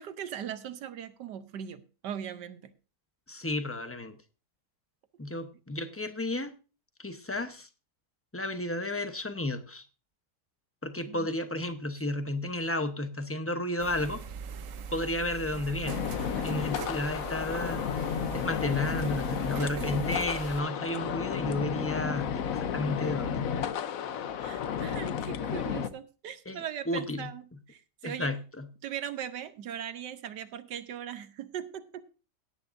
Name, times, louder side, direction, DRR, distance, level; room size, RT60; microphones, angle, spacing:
voice 1, 0.0-2.7 11.1-11.3 16.4-17.0 24.4-27.4 27.7-28.3 28.8-32.0, right 9 dB, 80° right, 11 dB, 1.4 m, -39 dB
voice 2, 3.3-4.2 5.2-6.5 7.0-7.7 8.3-9.9 10.8-14.2 14.9-16.0 16.4-23.5 26.5-27.3 28.0-28.7, left 1 dB, 15° left, 9 dB, 0.5 m, -32 dB
sound 1, 13.8-20.6, right 6 dB, 60° right, 1.0 m, -41 dB
sound 2, 15.8-25.9, left 8 dB, 60° left, 1.1 m, -32 dB
17.5 x 9.7 x 2.6 m, 0.33 s
omnidirectional pair, 1.8 m